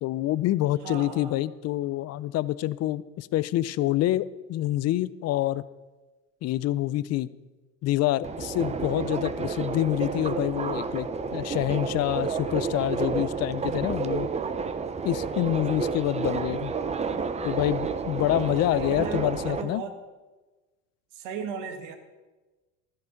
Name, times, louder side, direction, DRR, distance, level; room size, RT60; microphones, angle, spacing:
voice 1, 0.0-5.6 6.4-7.3 7.8-14.3 15.0-16.7 17.4-19.8, left 14 dB, 40° left, 18 dB, 0.5 m, -27 dB
voice 2, 0.8-1.4 18.7-20.0 21.1-22.0, right 6 dB, 75° right, 6 dB, 1.8 m, -36 dB
Subway metro underground, 8.2-19.6, right 5 dB, 15° right, 0.6 m, -30 dB
12.5 x 9.6 x 5.2 m, 1.2 s
supercardioid pair, 105°, 38 cm